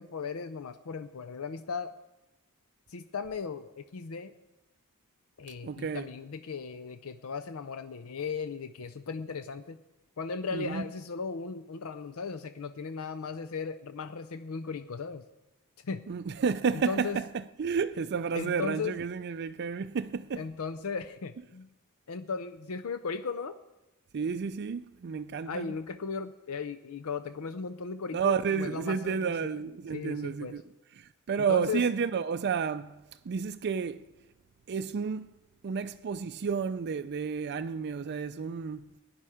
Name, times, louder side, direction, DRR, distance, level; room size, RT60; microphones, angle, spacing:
voice 1, 0.0-1.9 2.9-4.3 5.4-9.8 10.2-15.2 15.8-16.0 16.7-17.2 18.3-19.0 20.4-21.7 22.1-23.6 25.5-29.3 29.9-30.5 31.5-31.8, left 5 dB, 70° left, 0.5 m, -36 dB
voice 2, 5.6-6.1 10.5-10.9 16.1-20.4 24.1-25.7 28.1-30.6 31.0-33.0 33.2-34.0 34.7-35.3 35.6-38.9, right 6 dB, 50° right, 0.4 m, -31 dB
17.5 x 10.5 x 4.9 m
head